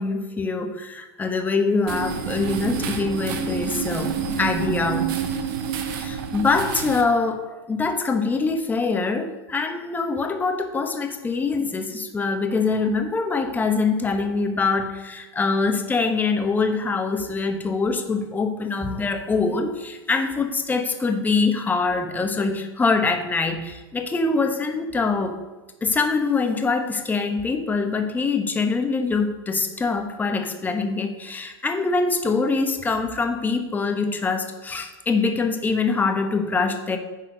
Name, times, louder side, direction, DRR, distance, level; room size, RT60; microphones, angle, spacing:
voice 1, 0.0-5.1 5.9-25.4 25.8-37.0, left 4 dB, 15° left, 5 dB, 0.9 m, -24 dB
sound 1, 1.9-7.0, right 7 dB, 60° right, 1.0 m, -28 dB
10.0 x 4.2 x 5.1 m, 1.1 s
hypercardioid pair, 120°, 13 cm